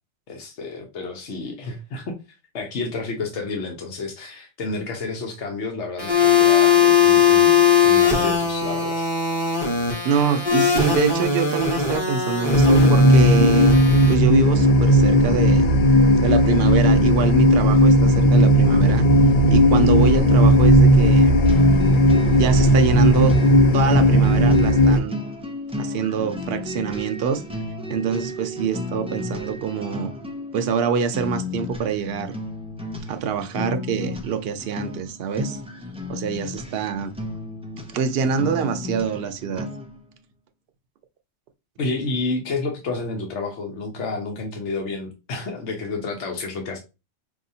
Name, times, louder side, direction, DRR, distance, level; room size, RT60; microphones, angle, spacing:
voice 1, 0.3-2.2 2.5-9.1 41.8-46.8, left 3 dB, 85° left, 1.1 m, -30 dB
sound 1, 6.0-14.1, left 6 dB, 20° left, 1.0 m, -19 dB
voice 2, 10.0-13.8 14.1-15.7 16.2-19.0 19.5-21.4 22.3-23.3 23.7-25.2 25.8-27.4 27.9-30.1 30.5-32.3 33.1-35.6 36.1-37.1 37.9-39.7, right 6 dB, 65° right, 0.8 m, -25 dB
sound 2, 12.5-25.0, equal, 50° left, 0.7 m, -15 dB
sound 3, 21.4-40.0, left 2 dB, 10° right, 0.4 m, -33 dB
4.9 x 2.7 x 2.7 m
omnidirectional pair, 1.1 m